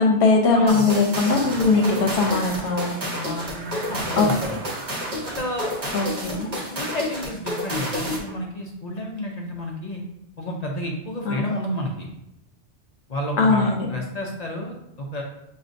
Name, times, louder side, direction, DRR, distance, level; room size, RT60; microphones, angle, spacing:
voice 1, 0.0-2.9 4.2-4.6 5.9-6.5 11.2-11.4 13.4-13.9, left 3 dB, 75° left, 1 dB, 1.0 m, -20 dB
sound 1, 0.7-8.3, equal, 40° right, 0.9 m, -30 dB
sound 2, 1.3-6.5, right 3 dB, 80° right, 0.9 m, -38 dB
voice 2, 3.1-4.6 5.3-5.7 6.2-10.0 10.4-12.1 13.1-15.2, left 1 dB, 50° left, 0 dB, 0.5 m, -31 dB
6.2 x 2.5 x 2.5 m, 0.84 s
omnidirectional pair, 1.2 m